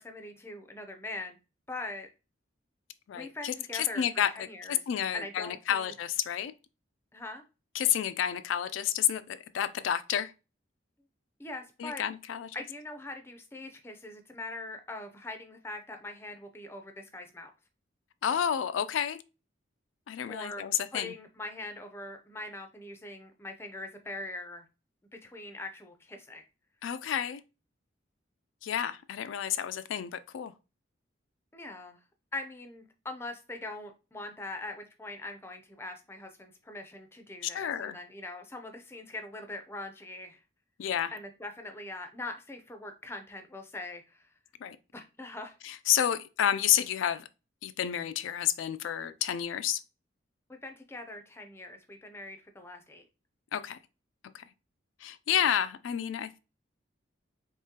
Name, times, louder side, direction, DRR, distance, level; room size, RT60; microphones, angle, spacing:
voice 1, 0.0-1.4 1.7-2.1 3.1-4.8 5.1-5.9 7.1-7.4 11.4-12.0 12.5-17.5 20.3-20.6 20.9-24.6 25.1-26.4 31.5-32.0 32.3-40.4 41.1-44.3 44.9-45.5 50.5-53.0, left 2 dB, 15° left, 0.4 m, -42 dB
voice 2, 3.1-6.5 7.7-10.3 11.8-12.6 18.2-19.2 20.1-21.1 26.8-27.4 28.6-30.5 37.5-38.0 40.8-41.1 44.6-44.8 45.6-47.2 47.6-49.8 53.5-53.8 54.3-54.4 55.0-56.4, left 10 dB, 85° left, 0.3 m, -30 dB
3.6 x 3.1 x 2.8 m
head